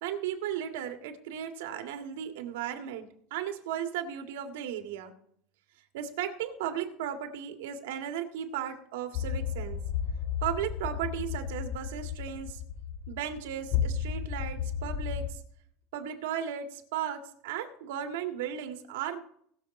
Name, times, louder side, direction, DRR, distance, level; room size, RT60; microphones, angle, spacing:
voice 1, 0.0-5.1 5.9-9.8 10.4-12.6 13.1-15.4 15.9-19.2, right 9 dB, 90° right, 5 dB, 1.8 m, -35 dB
sound 1, 9.1-15.3, left 8 dB, 45° left, 3.0 m, -33 dB
19.0 x 6.9 x 4.2 m, 0.65 s
cardioid pair, 170°, 0 cm